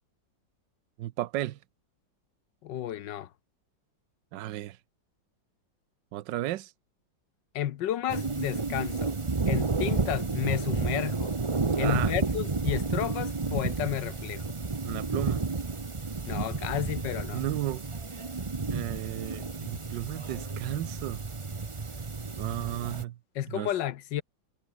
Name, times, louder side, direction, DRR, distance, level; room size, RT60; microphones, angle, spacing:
voice 1, 1.0-1.6 4.3-4.8 6.1-6.7 11.8-12.2 14.8-15.4 17.3-17.9 18.7-21.2 22.4-23.2 23.5-23.7, right 14 dB, 75° right, 1.4 m, -34 dB
voice 2, 2.6-3.3 7.5-9.1 9.5-11.3 11.8-14.4 16.3-17.4 23.3-24.2, left 11 dB, 75° left, 1.5 m, -32 dB
sound 1, 8.1-23.0, right 4 dB, 25° right, 0.7 m, -31 dB
omnidirectional pair, 2.0 m